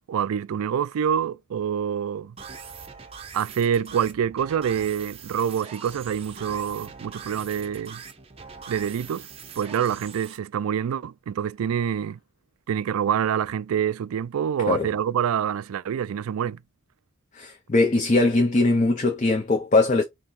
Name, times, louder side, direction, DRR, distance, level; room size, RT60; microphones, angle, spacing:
voice 1, 0.1-2.4 3.3-8.0 8.7-9.3 9.6-12.2 12.7-16.6, right 8 dB, 90° right, 0.3 m, -26 dB
sound 1, 2.4-10.4, right 6 dB, 25° right, 0.6 m, -42 dB
voice 2, 17.3-20.0, left 2 dB, 35° left, 0.6 m, -21 dB
4.4 x 3.0 x 3.7 m
head